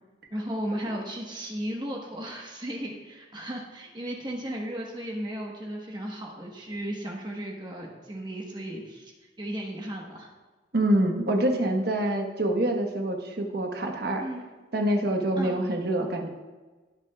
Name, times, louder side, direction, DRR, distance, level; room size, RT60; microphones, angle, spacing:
voice 1, 0.3-10.3 14.2-14.4 15.4-15.6, right 1 dB, 25° right, -1 dB, 1.2 m, -35 dB
voice 2, 10.7-14.2 14.7-16.3, right 1 dB, 60° right, 3 dB, 1.2 m, -26 dB
18.0 x 8.1 x 2.3 m, 1.3 s
head